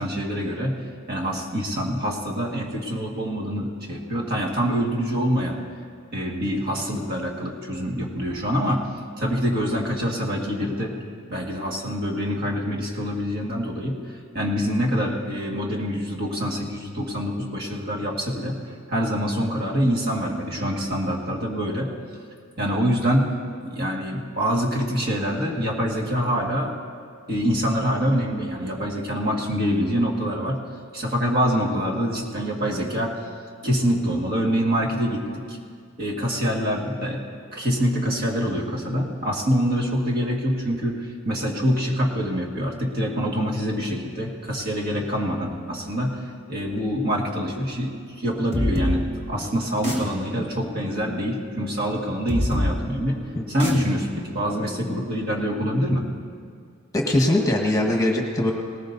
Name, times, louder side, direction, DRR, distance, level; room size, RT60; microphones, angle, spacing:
voice 1, 0.0-5.6 6.1-10.9 11.3-18.6 18.9-21.9 22.6-26.8 27.3-30.6 30.9-33.1 33.6-35.6 36.0-37.2 37.5-53.2 53.5-56.1, equal, 50° right, -2 dB, 2.0 m, -25 dB
sound 1, 48.5-55.9, left 1 dB, 30° right, 2.8 m, -29 dB
voice 2, 56.9-58.5, left 1 dB, 15° left, 1 dB, 1.4 m, -21 dB
19.0 x 19.0 x 2.7 m, 2.1 s
head